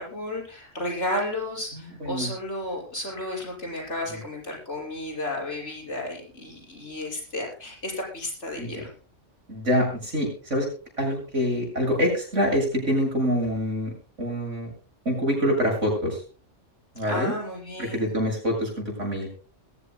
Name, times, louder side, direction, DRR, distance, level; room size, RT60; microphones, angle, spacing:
voice 1, 0.0-8.9 17.0-18.1, left 1 dB, 65° left, -1 dB, 6.7 m, -33 dB
voice 2, 1.7-2.3 4.1-4.2 8.6-8.8 9.5-10.7 11.0-14.7 15.1-16.2 16.9-17.3 17.8-19.3, equal, 80° right, 1 dB, 7.6 m, -26 dB
22.0 x 15.0 x 2.2 m, 0.38 s
omnidirectional pair, 1.3 m